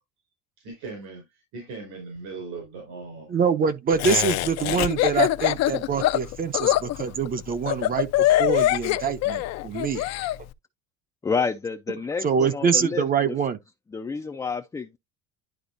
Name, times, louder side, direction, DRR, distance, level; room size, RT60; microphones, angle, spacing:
voice 1, 0.6-3.3, right 4 dB, 75° right, 4.7 m, -39 dB
voice 2, 3.3-10.0 12.2-13.6, right 6 dB, 30° right, 0.7 m, -25 dB
Laughter, 4.0-10.4, left 15 dB, 60° left, 0.6 m, -23 dB
voice 3, 11.2-13.4 13.9-15.0, left 5 dB, 10° left, 0.4 m, -29 dB
11.5 x 4.1 x 2.5 m
cardioid pair, 140°, 30 cm